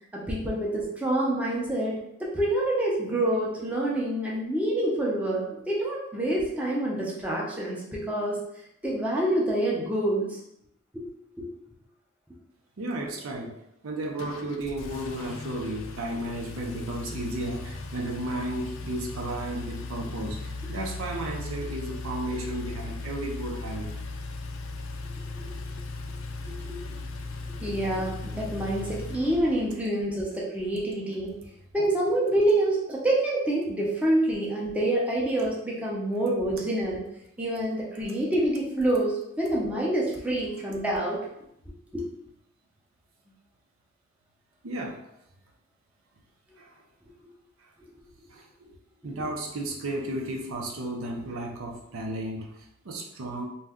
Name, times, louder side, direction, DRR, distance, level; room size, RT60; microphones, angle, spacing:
voice 1, 0.1-8.4 8.8-10.4 10.9-11.0 11.4-11.5 25.4-25.6 26.6-27.0 27.6-31.3 31.7-37.0 37.4-41.3 41.9-42.1, right 1 dB, 5° right, -5 dB, 0.5 m, -27 dB
voice 2, 12.8-13.5 13.8-23.9 44.6-45.0 46.6-46.8 48.3-48.7 49.0-53.5, right 1 dB, 85° right, 1 dB, 0.6 m, -33 dB
Engine, 14.2-29.9, left 3 dB, 75° left, 0.4 m, -37 dB
2.6 x 2.2 x 3.5 m, 0.78 s
head